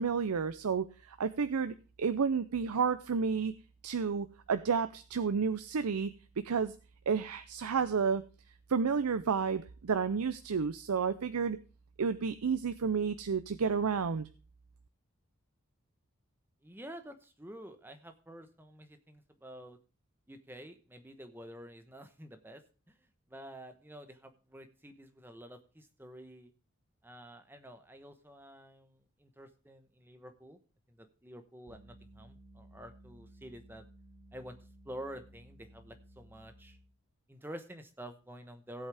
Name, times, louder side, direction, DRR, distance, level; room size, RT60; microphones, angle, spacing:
voice 1, 0.0-3.5 3.8-6.1 6.4-6.7 7.1-8.2 8.7-11.6 12.0-14.3, right 5 dB, 90° right, 12 dB, 0.6 m, -31 dB
voice 2, 16.6-19.8 20.3-22.6 22.9-23.0 23.3-26.5 27.0-30.6 30.9-33.8 34.3-34.6 34.8-36.8 37.3-38.9, equal, 10° right, 8 dB, 1.0 m, -49 dB
sound 1, 31.7-37.0, right 1 dB, 45° right, 3.8 m, -57 dB
17.0 x 8.1 x 3.4 m, 0.34 s
head